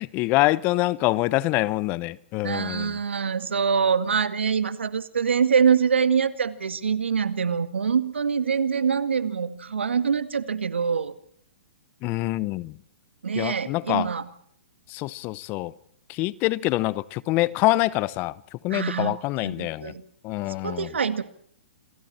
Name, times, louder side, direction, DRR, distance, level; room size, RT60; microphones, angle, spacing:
voice 1, 0.0-2.9 12.0-12.7 13.4-14.1 14.9-15.7 16.1-18.3 18.6-19.9 20.2-20.9, left 19 dB, 30° left, 0.9 m, -25 dB
voice 2, 2.4-11.1 13.2-14.3 18.7-20.0 20.6-21.2, right 6 dB, 85° right, 2.1 m, -24 dB
28.0 x 22.0 x 4.4 m
hypercardioid pair, 135°, 6 cm